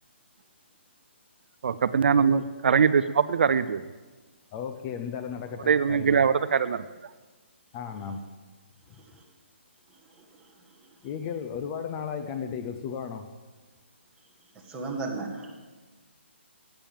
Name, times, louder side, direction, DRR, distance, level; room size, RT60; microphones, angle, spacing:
voice 1, 1.6-3.8 5.7-6.8, right 6 dB, 60° right, 14 dB, 0.5 m, -22 dB
voice 2, 2.2-2.5 4.5-6.3 7.7-8.2 11.0-13.3, left 7 dB, 25° left, 7 dB, 0.7 m, -35 dB
voice 3, 14.6-15.6, right 3 dB, 10° right, -2 dB, 1.8 m, -35 dB
12.5 x 9.0 x 7.3 m, 1.3 s
hypercardioid pair, 155°, 7 cm